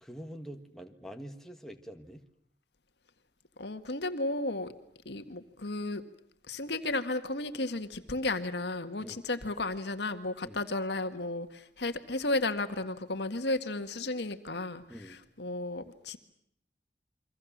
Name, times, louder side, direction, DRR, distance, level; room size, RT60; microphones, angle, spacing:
voice 1, 0.0-2.2 9.0-9.2 10.4-10.6 14.9-15.2, equal, ahead, 4 dB, 1.8 m, -45 dB
voice 2, 3.6-4.7 5.1-6.0 6.5-16.2, left 2 dB, 65° left, 9 dB, 1.9 m, -33 dB
29.0 x 24.0 x 7.4 m, 0.69 s
head